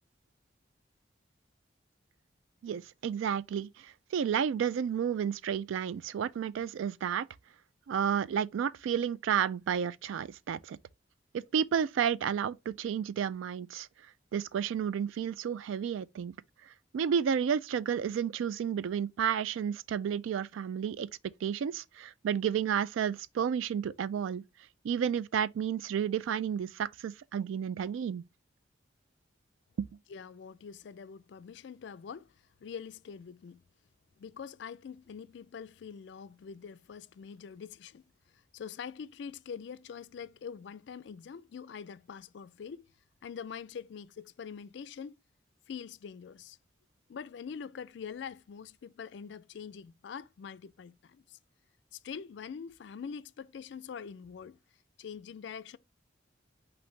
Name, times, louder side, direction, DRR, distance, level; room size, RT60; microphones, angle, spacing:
voice 1, 2.6-7.3 7.9-10.8 11.3-13.9 14.3-16.3 16.9-21.1 21.4-24.4 24.8-28.2, right 8 dB, 85° right, 0.3 m, -31 dB
voice 2, 30.1-33.6 34.2-38.0 38.3-42.9 43.2-45.2 45.7-46.6 47.1-51.4 51.9-54.6 55.0-55.8, left 6 dB, 65° left, 0.3 m, -44 dB
5.7 x 2.6 x 3.2 m
head